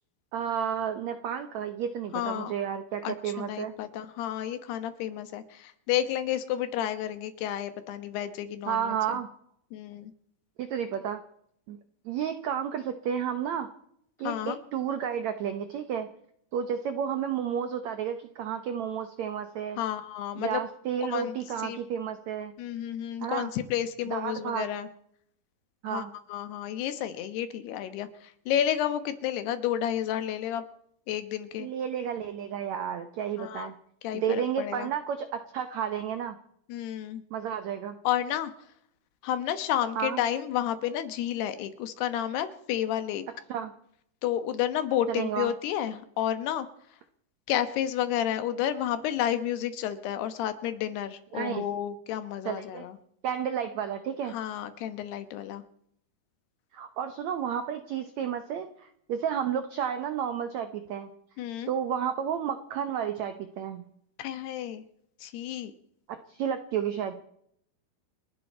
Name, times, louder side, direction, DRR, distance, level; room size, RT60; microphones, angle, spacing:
voice 1, 0.3-3.7 8.7-9.3 10.6-11.2 11.7-11.8 12.0-13.7 14.2-16.1 16.5-19.8 20.4-22.5 23.2-23.5 24.1-24.7 25.8-26.1 31.6-33.7 34.1-36.4 37.3-38.0 40.0-40.2 43.5-43.7 45.1-45.5 51.3-51.6 52.4-52.9 53.2-54.3 56.7-61.1 61.7-63.8 66.1-67.2, right 8 dB, 80° right, 9 dB, 1.6 m, -31 dB
voice 2, 2.1-2.5 3.0-9.2 9.7-10.1 14.2-14.6 19.8-20.6 21.1-21.4 21.6-21.8 22.6-24.9 25.9-26.0 26.3-30.6 31.1-31.7 33.4-33.7 34.0-34.9 36.7-37.2 38.0-38.5 39.2-43.2 44.2-46.7 47.5-53.0 54.3-55.6 61.4-61.7 64.2-64.8 65.2-65.7, left 11 dB, 90° left, 10 dB, 3.3 m, -31 dB
29.5 x 11.0 x 4.3 m, 0.71 s
omnidirectional pair, 4.5 m